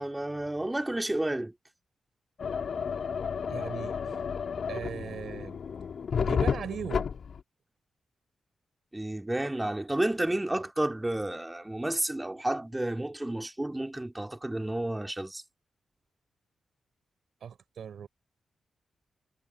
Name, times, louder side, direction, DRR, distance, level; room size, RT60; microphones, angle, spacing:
voice 1, 0.0-1.5 8.9-15.4, right 1 dB, 15° right, 2.8 m, -31 dB
sound 1, 2.4-7.4, left 6 dB, 65° left, 3.5 m, -32 dB
voice 2, 3.5-4.2 4.7-5.7 6.2-7.1 17.4-18.1, right 8 dB, 70° right, 3.8 m, -39 dB
supercardioid pair, 40°, 0 cm